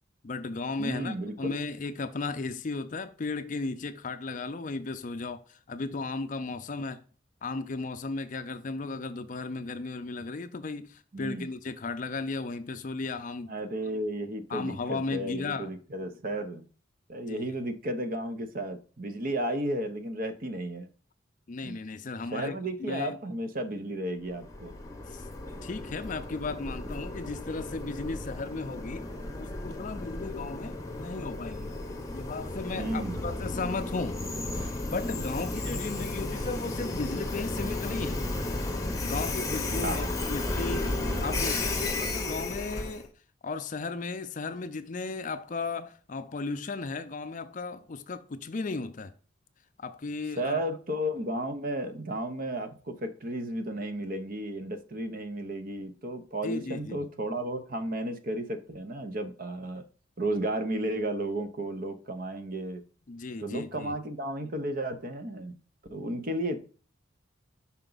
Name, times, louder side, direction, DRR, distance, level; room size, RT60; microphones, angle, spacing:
voice 1, 0.2-7.0 7.4-13.5 14.5-15.7 17.3-17.5 21.5-22.5 22.8-23.2 25.0-25.2 25.6-29.1 29.4-31.7 32.1-34.2 34.6-38.2 39.0-40.9 41.2-43.1 43.4-49.1 49.8-50.6 56.4-57.0 63.1-64.0, left 3 dB, 40° left, 0.5 m, -35 dB
voice 2, 0.8-1.6 11.1-11.5 13.5-16.6 17.1-20.9 21.6-21.8 22.3-24.7 32.8-33.3 39.8-40.1 50.4-59.8 60.2-62.8 63.4-65.5 65.9-66.6, right 1 dB, 45° right, 0.7 m, -33 dB
Train, 24.3-43.1, left 2 dB, 15° left, 0.8 m, -33 dB
5.8 x 4.4 x 3.9 m
head